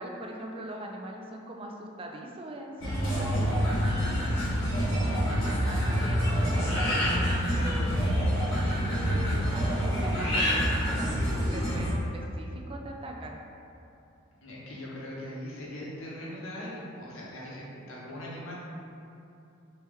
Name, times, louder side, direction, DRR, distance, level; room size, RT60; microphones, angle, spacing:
voice 1, 0.0-3.8 5.6-7.1 7.6-8.1 8.9-13.4, right 1 dB, 25° right, 1 dB, 0.3 m, -41 dB
sound 1, 2.8-11.9, equal, 65° left, 1.2 m, -27 dB
voice 2, 4.2-5.4 14.4-18.6, left 1 dB, 90° left, -5 dB, 0.9 m, -41 dB
3.2 x 2.9 x 3.5 m, 2.8 s
head